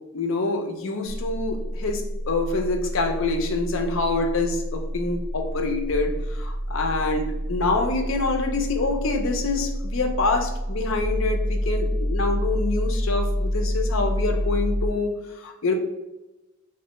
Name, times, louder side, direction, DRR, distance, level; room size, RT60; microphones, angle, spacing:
voice 1, 0.1-15.7, left 3 dB, 65° left, 4 dB, 0.5 m, -26 dB
sound 1, 1.0-14.9, equal, 75° right, 0.9 m, -28 dB
3.2 x 2.5 x 3.0 m, 1.0 s
head